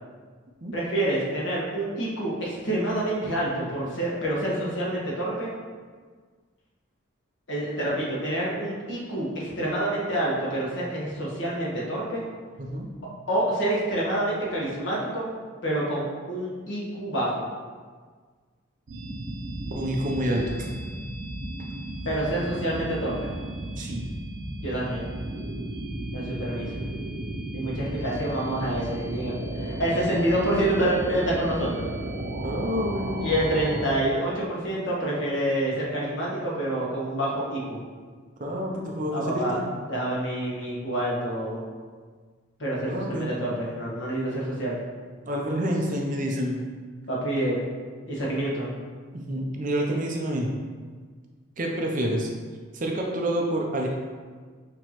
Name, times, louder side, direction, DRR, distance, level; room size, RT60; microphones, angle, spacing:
voice 1, 0.7-5.5 7.5-12.2 13.3-15.3 15.6-17.3 22.0-23.3 24.6-25.0 26.1-26.8 27.5-31.9 33.2-37.8 39.1-39.6 39.9-41.6 42.6-44.8 47.1-47.6 48.1-48.8, right 1 dB, 60° left, -5 dB, 1.3 m, -27 dB
sound 1, 18.9-33.9, right 1 dB, 70° right, 0.7 m, -34 dB
voice 2, 19.8-20.7 23.8-24.0 32.4-33.2 38.4-39.6 42.9-43.3 45.3-46.6 49.1-50.5 51.6-52.3 52.7-53.9, equal, 40° right, 0 dB, 0.6 m, -28 dB
6.0 x 2.9 x 3.0 m, 1.5 s
head